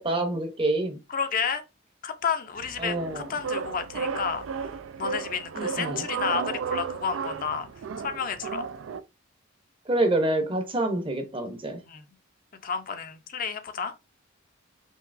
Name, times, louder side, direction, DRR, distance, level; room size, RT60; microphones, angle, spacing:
voice 1, 0.0-1.0 2.8-3.3 5.6-6.0 9.9-11.8, right 2 dB, 25° right, 0.8 m, -27 dB
voice 2, 1.1-1.6 2.0-4.7 5.0-7.7 8.0-8.7 11.9-12.0 12.6-13.9, left 6 dB, 45° left, 0.5 m, -31 dB
sound 1, 2.6-9.0, right 5 dB, 75° right, 0.4 m, -33 dB
5.5 x 2.9 x 2.5 m
head